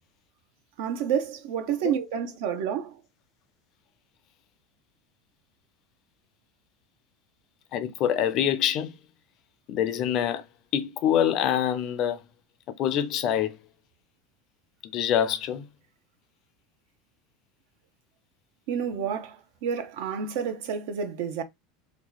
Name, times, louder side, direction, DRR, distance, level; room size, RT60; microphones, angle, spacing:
voice 1, 0.8-3.0 18.7-21.4, right 8 dB, 65° right, 0.7 m, -29 dB
voice 2, 7.7-8.9 9.7-10.4 10.7-12.2 12.8-13.6 14.9-15.7, left 10 dB, 45° left, 0.5 m, -25 dB
2.9 x 2.3 x 3.9 m
supercardioid pair, 140°, 0 cm